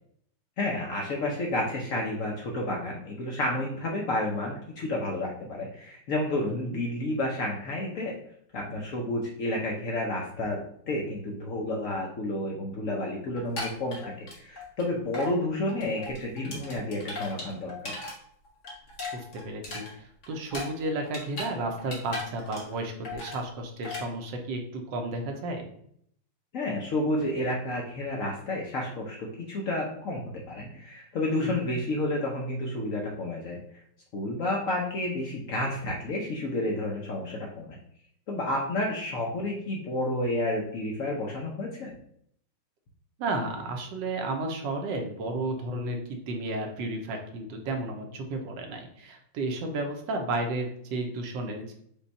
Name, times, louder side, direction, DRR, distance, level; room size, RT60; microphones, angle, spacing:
voice 1, 0.6-8.2 8.5-17.9 26.5-33.6 34.1-37.8 38.3-41.9, left 1 dB, 65° left, -1 dB, 0.8 m, -30 dB
voice 2, 6.5-6.8 19.1-25.6 31.4-31.7 43.2-46.0 46.3-51.7, right 2 dB, 80° right, 3 dB, 1.4 m, -33 dB
sound 1, 13.4-14.8 15.1-15.3 15.7-18.1 18.5-21.5 21.8-22.8 23.0-23.4 23.8-24.0, left 2 dB, 45° left, 1.4 m, -37 dB
5.2 x 2.3 x 4.0 m, 0.68 s
omnidirectional pair, 2.0 m